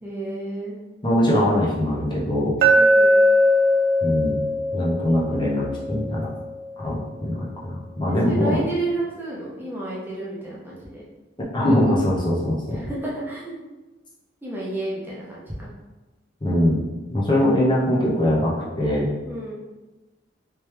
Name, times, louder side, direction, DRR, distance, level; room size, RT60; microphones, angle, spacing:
voice 1, 0.0-0.8 2.7-3.2 8.2-11.0 12.7-13.6 14.4-15.7 19.3-19.5, right 2 dB, 10° right, -6 dB, 0.6 m, -31 dB
voice 2, 1.0-2.5 4.0-4.4 4.7-6.3 6.8-8.6 11.5-12.8 16.4-16.8 17.1-19.1, left 1 dB, 25° left, -5 dB, 0.8 m, -22 dB
Glass, 2.6-6.7, equal, 50° right, 0.3 m, -20 dB
3.2 x 3.1 x 3.3 m, 1.1 s
head